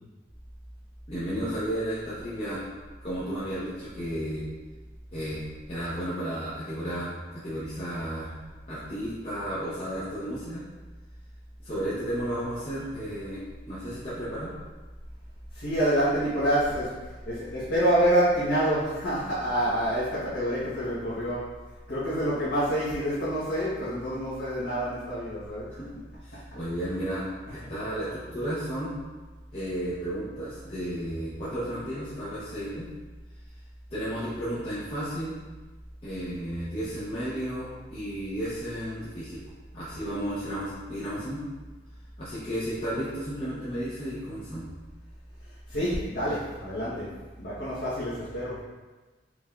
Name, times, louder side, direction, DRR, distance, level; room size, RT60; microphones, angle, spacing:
voice 1, 1.1-2.7 3.0-4.4 5.1-5.4 5.7-8.3 8.7-10.6 11.6-14.5 25.7-25.9 26.2-27.2 27.5-28.9 29.5-32.9 33.9-35.3 36.0-39.4 39.7-41.4 42.2-44.7, equal, 35° left, -12 dB, 0.9 m, -33 dB
voice 2, 15.5-21.5 21.9-25.7 45.4-48.6, equal, 65° left, -12 dB, 1.3 m, -27 dB
4.9 x 3.4 x 2.5 m, 1.3 s
head